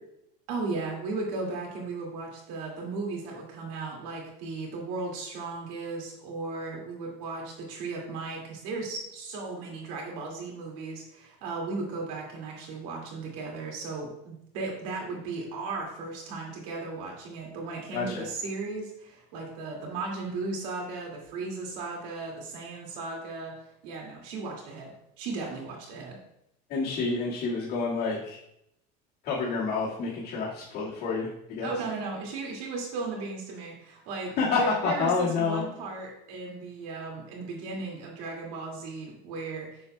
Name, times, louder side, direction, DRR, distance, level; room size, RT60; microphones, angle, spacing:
voice 1, 0.5-26.2 31.6-39.8, right 3 dB, 75° right, -1 dB, 2.3 m, -36 dB
voice 2, 17.9-18.3 26.7-28.4 29.2-31.7 34.4-35.7, left 4 dB, 50° left, -7 dB, 1.9 m, -28 dB
7.0 x 6.6 x 2.3 m, 0.77 s
supercardioid pair, 105°, 21 cm